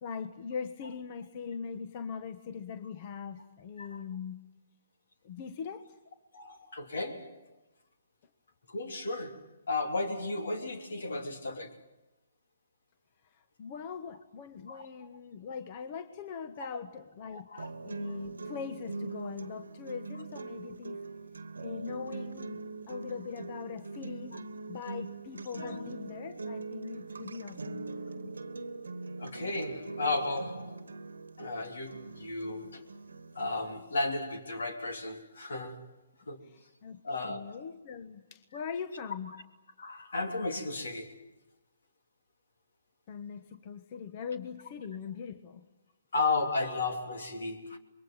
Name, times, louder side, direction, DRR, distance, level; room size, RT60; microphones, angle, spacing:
voice 1, 0.0-4.4 5.2-6.0 13.3-21.0 21.6-22.6 22.9-24.4 24.7-27.9 28.1-28.3 36.4-39.3 43.1-45.6, left 6 dB, 40° left, 1.2 m, -41 dB
voice 2, 6.3-7.4 8.7-11.8 14.7-14.8 17.3-17.7 18.0-18.2 25.6-25.8 29.2-30.8 31.4-32.8 33.3-35.9 36.3-36.4 37.0-37.6 39.8-41.2 46.1-47.8, left 3 dB, 75° left, 3.2 m, -34 dB
sound 1, 17.6-33.6, right 3 dB, 90° right, 1.4 m, -42 dB
26.5 x 22.0 x 9.1 m
hypercardioid pair, 140°, 0 cm